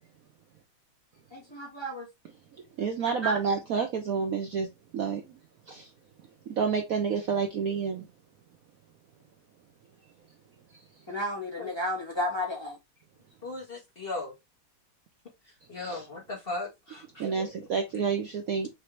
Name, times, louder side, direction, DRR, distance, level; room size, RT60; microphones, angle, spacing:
voice 1, 1.3-2.1 3.0-3.4 11.1-12.8, equal, 15° left, 1.1 m, -32 dB
voice 2, 2.8-4.7 4.9-5.3 5.7-5.9 6.5-8.0 15.8-16.0 17.2-18.7, right 6 dB, 60° right, 0.9 m, -29 dB
voice 3, 13.4-14.3 15.7-17.3, left 2 dB, 30° left, 1.4 m, -37 dB
5.9 x 2.7 x 3.1 m
omnidirectional pair, 2.2 m